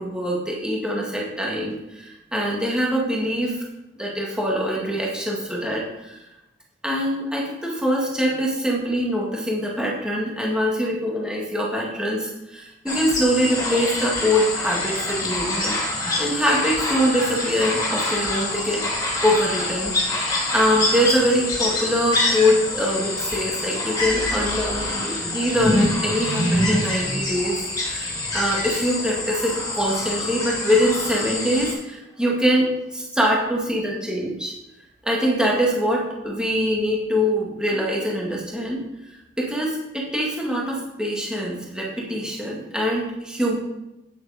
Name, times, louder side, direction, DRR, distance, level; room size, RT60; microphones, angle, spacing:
voice 1, 0.0-3.6 4.0-6.2 6.8-15.8 16.2-18.8 19.2-32.7 32.9-34.5 35.0-43.5, equal, 5° right, -3 dB, 1.8 m, -24 dB
sound 1, 12.9-31.7, left 2 dB, 25° left, 3.1 m, -26 dB
9.4 x 6.7 x 5.0 m, 0.90 s
head